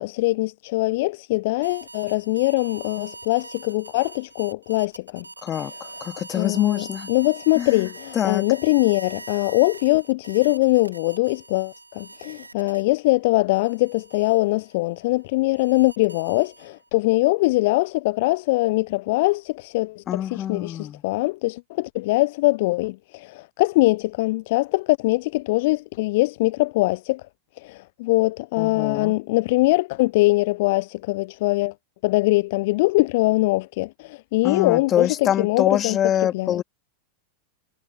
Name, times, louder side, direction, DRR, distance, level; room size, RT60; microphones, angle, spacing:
voice 1, 0.0-5.3 6.3-27.2 27.6-31.7 32.0-36.0 36.3-36.6, left 21 dB, 50° left, 0.6 m, -22 dB
sound 1, 1.6-13.1 13.5-16.9, right 2 dB, 80° right, 1.9 m, -42 dB
voice 2, 5.4-7.1 7.6-8.5 20.1-21.0 28.6-29.1 34.4-36.6, left 10 dB, 30° left, 2.3 m, -25 dB
figure-of-eight pair, 90°, 0 cm